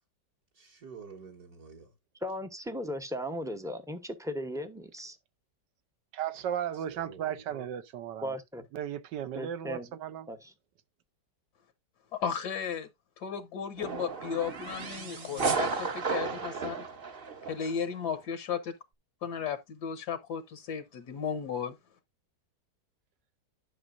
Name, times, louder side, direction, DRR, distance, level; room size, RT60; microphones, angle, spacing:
voice 1, 0.5-1.9 6.4-7.7, right 5 dB, 60° right, 1.7 m, -49 dB
voice 2, 2.2-5.2 8.2-8.6 9.3-9.9 10.3-10.5, equal, 5° right, 0.4 m, -37 dB
voice 3, 6.1-8.4 8.7-10.3, right 10 dB, 80° right, 1.4 m, -35 dB
voice 4, 12.1-12.9 13.2-16.9 17.5-18.7 19.2-21.8, left 7 dB, 70° left, 1.4 m, -35 dB
sound 1, 13.8-17.8, right 5 dB, 40° right, 0.9 m, -33 dB
11.0 x 6.1 x 2.5 m
omnidirectional pair, 1.9 m